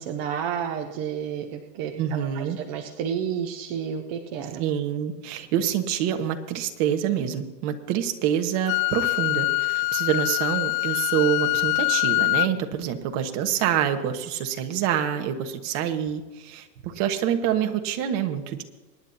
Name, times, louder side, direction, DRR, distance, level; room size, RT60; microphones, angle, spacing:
voice 1, 0.0-4.6, right 8 dB, 20° right, 4 dB, 0.4 m, -31 dB
voice 2, 2.0-2.6 4.6-18.6, right 9 dB, 35° right, 6 dB, 1.4 m, -26 dB
Wind instrument woodwind instrument, 8.7-12.5, left 26 dB, 60° left, 0.6 m, -24 dB
24.0 x 10.5 x 2.8 m, 1.2 s
hypercardioid pair, 135°, 47 cm